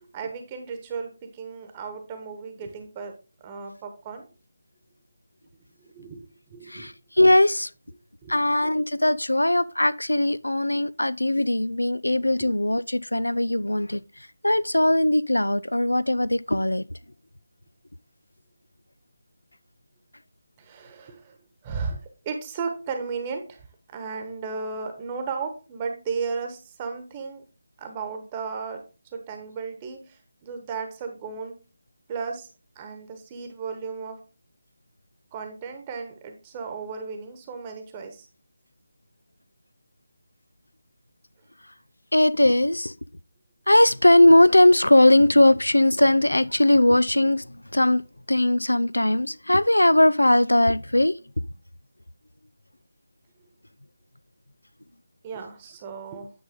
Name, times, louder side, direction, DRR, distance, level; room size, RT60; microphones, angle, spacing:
voice 1, 0.0-3.1 3.4-4.3 5.8-6.9 8.2-8.4 12.4-12.5 20.6-21.4 21.6-23.7 23.9-27.4 27.8-28.8 29.1-31.6 32.1-32.5 32.7-34.2 35.3-38.3 55.2-56.3, right 5 dB, 20° right, 1.1 m, -35 dB
voice 2, 6.7-7.7 8.3-16.8 42.1-42.9 43.7-48.0 48.3-51.2, left 1 dB, 85° left, 0.4 m, -19 dB
9.4 x 5.4 x 3.6 m
figure-of-eight pair, 155°, 0 cm